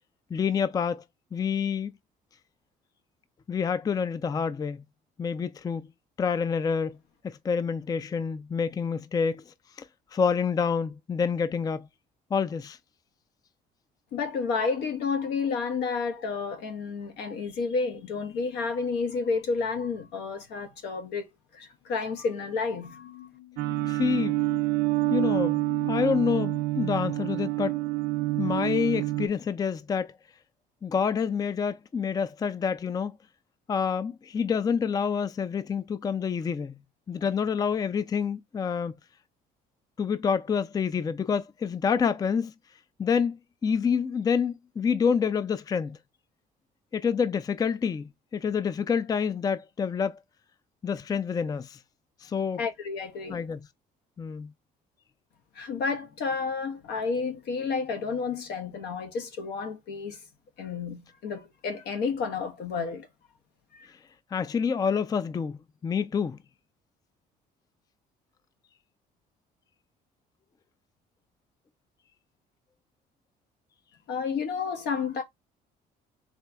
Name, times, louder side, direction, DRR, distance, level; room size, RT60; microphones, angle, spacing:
voice 1, 0.3-1.0 1.3-1.9 3.5-4.8 5.2-5.9 6.2-7.0 7.2-9.9 10.1-11.9 12.3-12.8 23.9-24.4 25.1-27.8 28.4-30.1 30.8-33.2 33.7-36.8 37.1-38.9 40.0-42.5 43.0-46.0 46.9-50.2 50.8-51.8 52.2-52.6 53.3-53.6 54.2-54.5 64.3-66.4, left 6 dB, 20° left, 0.4 m, -27 dB
voice 2, 14.1-21.3 21.5-23.1 52.6-53.4 55.5-60.2 60.6-63.1 63.7-63.9 74.1-75.2, left 5 dB, 80° left, 1.2 m, -31 dB
sound 1, 21.9-22.0 22.2-27.9, left 15 dB, 55° left, 1.5 m, -47 dB
sound 2, 23.6-29.3, right 20 dB, 75° right, 0.5 m, -27 dB
4.4 x 3.0 x 3.4 m
cardioid pair, 110°, 17 cm